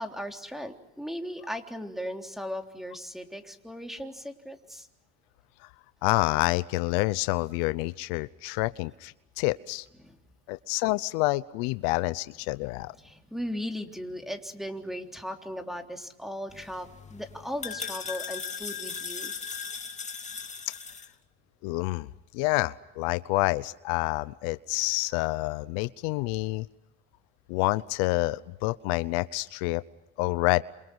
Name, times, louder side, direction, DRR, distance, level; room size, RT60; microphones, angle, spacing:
voice 1, 0.0-4.9 10.0-10.2 13.0-19.3, equal, ahead, 4 dB, 3.6 m, -37 dB
voice 2, 6.0-9.8 10.5-12.9 21.6-22.1 22.3-26.7 27.5-29.8 30.2-30.6, left 22 dB, 80° left, 16 dB, 0.8 m, -28 dB
sound 1, 16.5-21.1, left 6 dB, 20° left, 2.5 m, -38 dB
29.0 x 27.5 x 6.3 m, 0.90 s
supercardioid pair, 95°, 33 cm